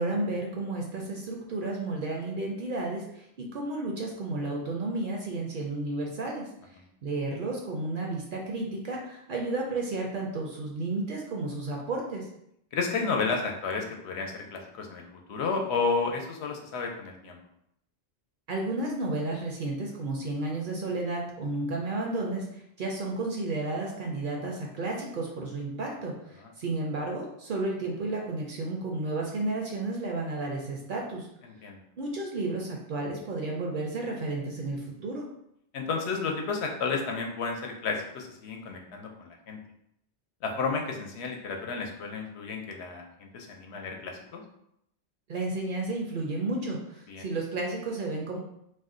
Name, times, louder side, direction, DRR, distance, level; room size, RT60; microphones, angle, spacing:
voice 1, 0.0-6.5 7.0-12.3 18.5-31.3 32.0-35.2 45.3-48.4, right 2 dB, 60° right, -1 dB, 0.6 m, -32 dB
voice 2, 12.7-15.0 15.3-17.4 31.4-31.8 35.7-39.6 40.4-44.4 47.1-47.2, left 4 dB, 75° left, 2 dB, 0.8 m, -32 dB
2.5 x 2.1 x 3.6 m, 0.77 s
omnidirectional pair, 1.1 m